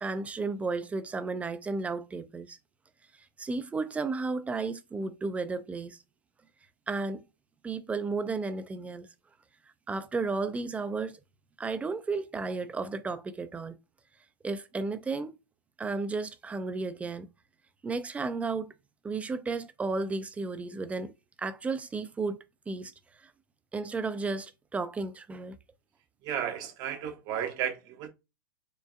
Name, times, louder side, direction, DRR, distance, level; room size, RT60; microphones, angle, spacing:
voice 1, 0.0-2.6 3.4-6.0 6.9-7.2 7.6-9.1 9.9-11.2 11.6-13.8 14.4-15.3 15.8-17.3 17.8-18.7 19.0-21.1 21.4-22.4 22.7-22.9 23.2-23.3 23.7-25.6, right 3 dB, 10° right, 0.4 m, -33 dB
voice 2, 26.2-28.1, right 9 dB, 40° right, 0.8 m, -33 dB
5.1 x 3.3 x 2.2 m
figure-of-eight pair, 100°, 11 cm